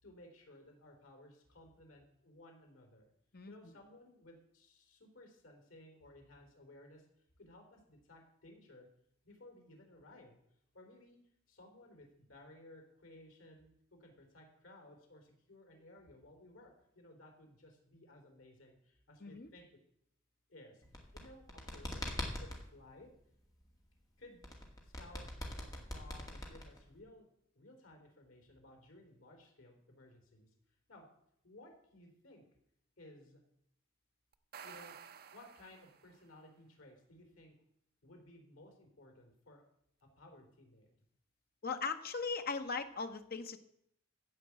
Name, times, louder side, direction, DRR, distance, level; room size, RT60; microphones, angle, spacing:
voice 1, 0.0-3.1 3.5-7.1 7.4-8.9 9.2-10.4 10.7-11.2 11.5-19.8 20.5-23.1 24.2-24.4 24.8-25.2 25.6-27.3 27.6-30.5 30.9-31.0 31.4-32.4 33.0-33.4 34.6-34.9 35.3-37.5 38.0-39.6 40.0-40.9, left 1 dB, 75° left, 3 dB, 3.7 m, -58 dB
sound 1, 20.8-22.6 24.4-27.0, left 1 dB, 20° left, 2.1 m, -42 dB
sound 2, 34.3-36.3, right 7 dB, 50° right, 0.7 m, -53 dB
voice 2, 41.6-43.6, left 4 dB, 50° left, 7 dB, 1.0 m, -38 dB
15.0 x 5.3 x 8.5 m, 0.74 s
head